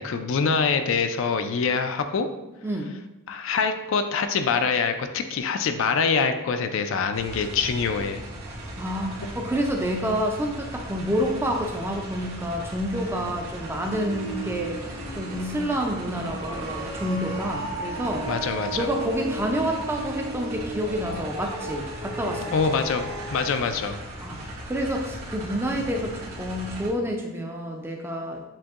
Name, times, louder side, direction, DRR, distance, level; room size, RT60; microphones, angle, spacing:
voice 1, 0.0-2.3 3.3-8.2 18.3-18.9 22.5-24.0, left 5 dB, 60° left, 8 dB, 0.3 m, -25 dB
sound 1, 7.1-26.9, right 1 dB, 80° right, 1.5 m, -38 dB
voice 2, 8.5-18.3 18.7-22.5 24.2-24.4 24.7-28.5, equal, 10° right, 1 dB, 0.4 m, -28 dB
sound 2, 13.0-23.5, right 2 dB, 55° right, 0.9 m, -37 dB
7.4 x 2.6 x 2.4 m, 1.0 s
head